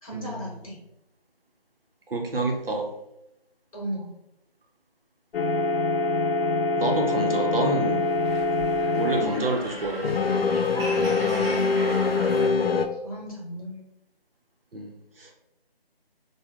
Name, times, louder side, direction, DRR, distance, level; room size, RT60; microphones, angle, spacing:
voice 1, 0.0-0.8 3.7-4.1 11.0-11.6 13.0-13.8, right 1 dB, 35° left, -4 dB, 1.1 m, -36 dB
voice 2, 2.1-2.9 6.8-8.0 8.9-10.1 14.7-15.3, right 2 dB, 70° right, 2 dB, 0.7 m, -28 dB
sound 1, 5.3-9.7 10.0-12.9, left 3 dB, 75° left, 0.5 m, -24 dB
sound 2, 7.8-12.5, equal, 25° right, 1.2 m, -37 dB
3.3 x 2.2 x 3.4 m, 0.83 s
figure-of-eight pair, 160°, 30 cm